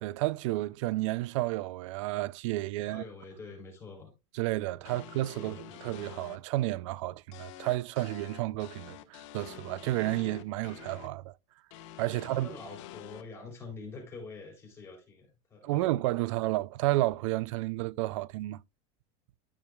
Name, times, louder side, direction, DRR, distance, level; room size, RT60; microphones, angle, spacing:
voice 1, 0.0-3.0 4.3-11.3 12.0-12.5 15.6-18.6, right 17 dB, 80° right, 0.5 m, -31 dB
voice 2, 2.8-4.1 4.9-5.1 5.3-5.7 12.1-16.3, left 3 dB, 15° left, 3.5 m, -46 dB
sound 1, 4.8-6.4 7.3-11.1 11.7-13.2, left 12 dB, 80° left, 1.2 m, -47 dB
12.0 x 6.4 x 2.3 m
cardioid pair, 170°, 16 cm